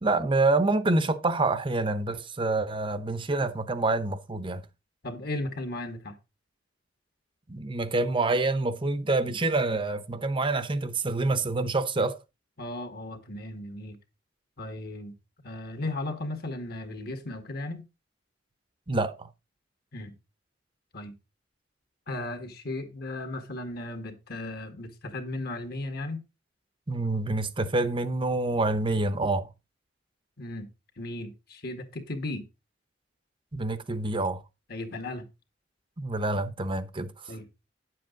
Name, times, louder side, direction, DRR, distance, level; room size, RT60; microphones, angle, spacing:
voice 1, 0.0-4.7 7.5-12.2 18.9-19.3 26.9-29.5 33.5-34.4 36.0-37.3, right 2 dB, 25° right, 0.8 m, -27 dB
voice 2, 5.0-6.2 12.6-14.0 14.6-15.1 15.4-17.8 19.9-20.1 20.9-21.1 22.1-26.2 30.4-30.7 31.0-32.4 34.7-35.3 37.3-37.5, left 2 dB, 55° left, 1.8 m, -36 dB
10.0 x 7.6 x 3.8 m
head